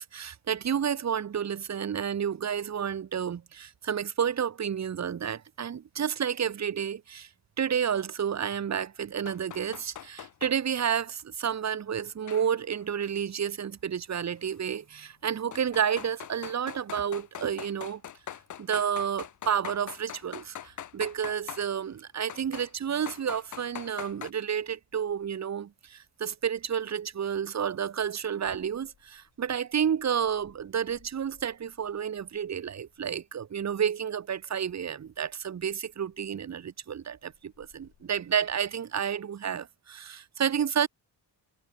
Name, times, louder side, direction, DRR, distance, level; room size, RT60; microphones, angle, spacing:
voice 1, 0.0-7.3 7.6-18.0 18.6-40.9, right 8 dB, 40° right, 1.0 m, -30 dB
sound 1, 9.3-10.6 12.3-12.8 14.4-14.5 15.5-21.7 22.3-22.7 23.0-24.3, left 10 dB, 50° left, 0.7 m, -42 dB
sound 2, 24.5-38.7, left 9 dB, 85° left, 7.9 m, -65 dB
wide cardioid pair, 165°, 40 cm